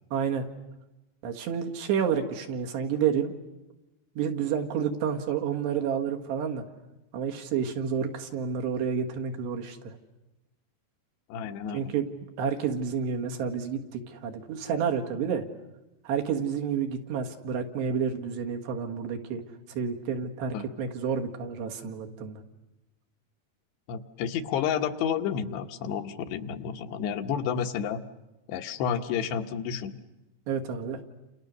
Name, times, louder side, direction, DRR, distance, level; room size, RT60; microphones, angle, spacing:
voice 1, 0.1-0.4 1.2-3.3 4.2-6.6 7.1-9.9 11.7-12.1 12.4-15.4 16.1-19.4 19.8-22.4 30.5-31.0, right 7 dB, 80° right, 2 dB, 4.1 m, -29 dB
voice 2, 11.3-11.9 20.5-20.7 23.9-28.0 28.5-30.0, left 8 dB, 80° left, 5 dB, 3.3 m, -30 dB
29.5 x 28.5 x 6.7 m, 1.0 s
omnidirectional pair, 4.9 m